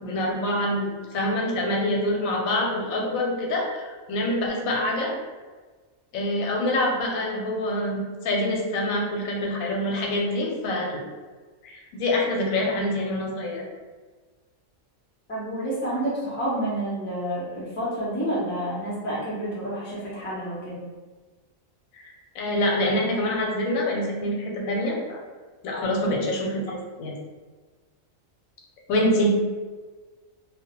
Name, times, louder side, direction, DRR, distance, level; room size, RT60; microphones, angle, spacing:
voice 1, 0.0-3.8 4.1-5.1 6.1-11.0 11.6-13.6 22.0-25.2 25.6-27.1 28.9-29.4, left 1 dB, 85° left, -1 dB, 1.0 m, -26 dB
voice 2, 15.3-20.8 25.7-26.0, right 1 dB, 20° left, -7 dB, 0.3 m, -29 dB
2.3 x 2.0 x 2.8 m, 1.4 s
omnidirectional pair, 1.4 m